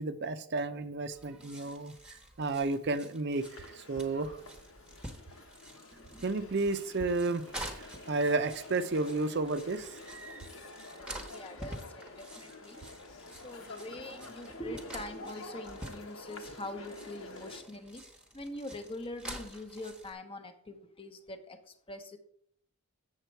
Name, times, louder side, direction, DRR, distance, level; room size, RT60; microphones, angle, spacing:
voice 1, 0.0-4.4 6.2-7.5 7.7-10.0, right 3 dB, 50° right, 11 dB, 0.6 m, -32 dB
sound 1, 1.1-20.1, right 1 dB, 5° right, 1.0 m, -48 dB
sound 2, 3.3-17.6, left 2 dB, 70° left, 1.2 m, -49 dB
voice 2, 11.2-12.8 13.3-18.0 18.3-22.2, left 1 dB, 25° left, 7 dB, 0.9 m, -44 dB
8.2 x 7.2 x 4.5 m, 0.66 s
head